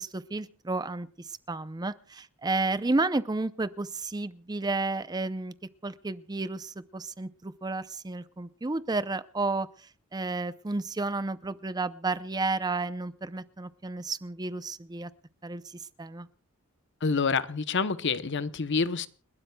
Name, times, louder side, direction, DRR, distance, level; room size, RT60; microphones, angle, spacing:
voice 1, 0.0-5.5 5.8-15.1 15.4-16.3, right 3 dB, 20° right, 14 dB, 0.5 m, -32 dB
voice 2, 17.0-19.1, left 5 dB, 60° left, 13 dB, 0.8 m, -27 dB
30.0 x 12.5 x 2.3 m, 0.37 s
head